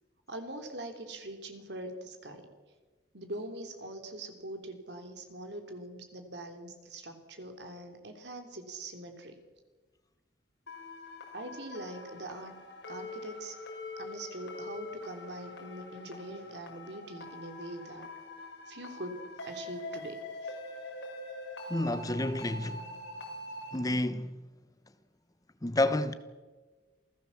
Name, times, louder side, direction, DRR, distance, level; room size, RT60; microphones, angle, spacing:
voice 1, 0.3-2.5 3.1-9.4 11.3-12.6 12.9-13.5 14.0-18.1 18.7-20.2 20.4-20.5, right 1 dB, 70° right, 3.3 m, -43 dB
sound 1, 10.7-23.8, left 2 dB, 80° left, 5.7 m, -44 dB
voice 2, 21.7-22.9 23.7-24.4 25.6-26.1, left 1 dB, 20° left, 1.0 m, -29 dB
28.0 x 16.5 x 7.3 m
head